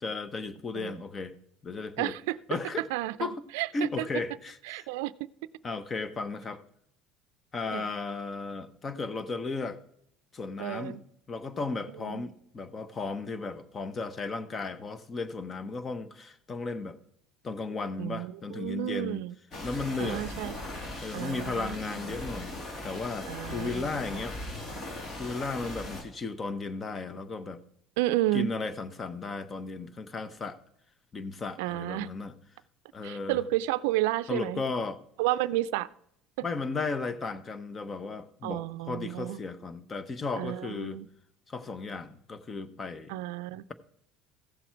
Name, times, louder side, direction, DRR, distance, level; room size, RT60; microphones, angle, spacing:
voice 1, 0.0-1.3 1.6-2.2 2.5-2.8 3.2-3.4 3.7-4.9 5.6-6.6 7.5-9.8 10.3-11.0 11.3-17.0 17.4-19.3 19.6-20.4 21.0-24.4 25.2-27.6 28.3-30.6 31.1-32.3 32.9-33.4 34.3-35.0 36.4-41.0 41.5-43.1, left 3 dB, 30° left, 1.0 m, -35 dB
voice 2, 2.0-2.4 2.9-3.9 4.7-5.1 7.7-7.9 10.6-11.0 12.0-12.2 18.0-19.3 20.0-20.6 21.1-22.1 23.3-24.2 28.0-28.5 31.6-32.1 33.0-34.6 35.2-35.9 38.4-39.4 40.4-41.1 43.1-43.6, right 16 dB, 80° right, 0.4 m, -31 dB
sound 1, 19.5-26.0, left 1 dB, 45° left, 2.7 m, -39 dB
15.5 x 7.1 x 4.6 m
supercardioid pair, 90°, 0 cm